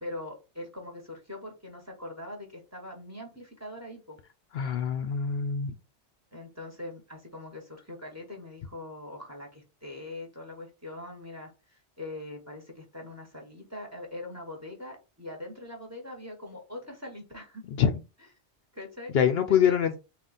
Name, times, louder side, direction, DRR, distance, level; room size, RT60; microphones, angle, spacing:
voice 1, 0.0-4.2 6.3-17.6 18.7-19.1 19.5-19.8, left 1 dB, 15° right, 2 dB, 1.1 m, -42 dB
voice 2, 4.5-5.8 17.8-18.0 19.1-20.0, left 8 dB, 65° left, 8 dB, 0.8 m, -24 dB
3.7 x 2.5 x 4.0 m, 0.29 s
omnidirectional pair, 1.2 m